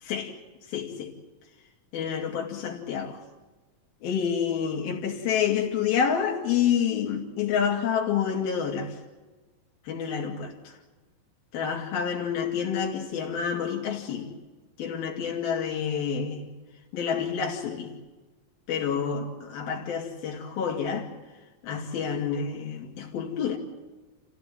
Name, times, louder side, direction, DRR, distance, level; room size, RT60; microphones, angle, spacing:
voice 1, 0.0-0.4 0.7-1.1 1.9-3.2 4.0-9.0 9.8-10.8 11.5-14.3 14.8-16.5 16.9-17.9 18.7-21.1 21.6-23.6, left 7 dB, 85° left, 4.4 m, -28 dB
29.5 x 15.5 x 9.1 m
omnidirectional pair, 4.2 m